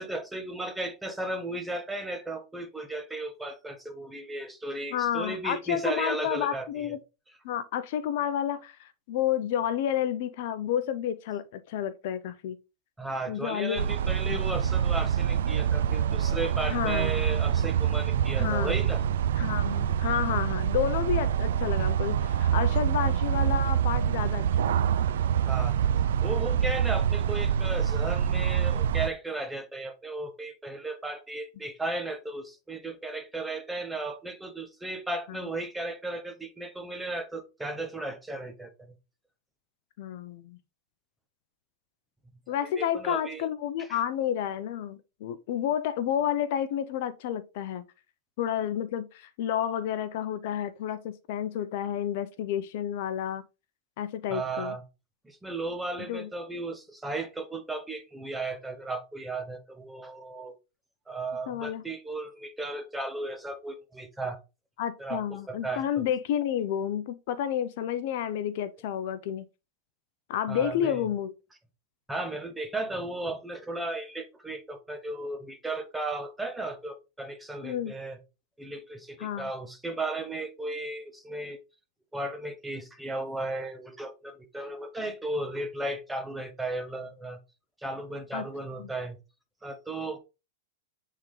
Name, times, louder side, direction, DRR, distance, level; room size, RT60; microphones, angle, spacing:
voice 1, 0.0-7.0 13.0-19.0 25.5-25.8 26.2-38.9 42.8-43.5 43.8-44.0 54.3-54.8 55.2-60.6 61.1-64.4 65.0-66.0 70.5-71.0 72.1-78.2 78.6-81.6 82.1-87.4 87.8-89.2 89.6-90.2, right 2 dB, 5° right, 1.0 m, -35 dB
voice 2, 4.9-7.0 7.4-12.6 13.3-13.8 14.3-14.4 16.6-17.1 18.4-18.8 19.4-24.8 35.3-35.4 40.0-40.6 42.5-47.8 48.4-53.4 54.0-54.7 56.1-56.3 61.5-61.8 64.8-69.4 70.3-71.3 77.6-77.9 79.2-79.5 88.3-88.4 88.8-88.9, left 10 dB, 60° left, 0.6 m, -30 dB
sound 1, 13.8-29.1, right 9 dB, 75° right, 0.4 m, -26 dB
8.2 x 3.7 x 3.2 m
hypercardioid pair, 135°, 0 cm